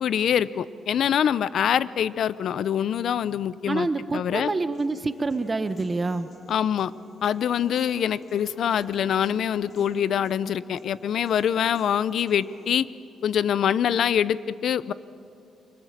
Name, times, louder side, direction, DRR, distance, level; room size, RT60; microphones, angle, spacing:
voice 1, 0.0-3.9 4.1-4.5 6.5-6.9 7.2-12.9 13.2-14.9, left 9 dB, 70° left, 17 dB, 0.7 m, -24 dB
voice 2, 3.7-6.3, right 3 dB, 25° right, 11 dB, 1.0 m, -27 dB
Human voice / Piano, 4.7-12.7, left 2 dB, 45° left, 4.2 m, -50 dB
29.0 x 24.5 x 7.4 m, 2.5 s
cardioid pair, 110°, 0 cm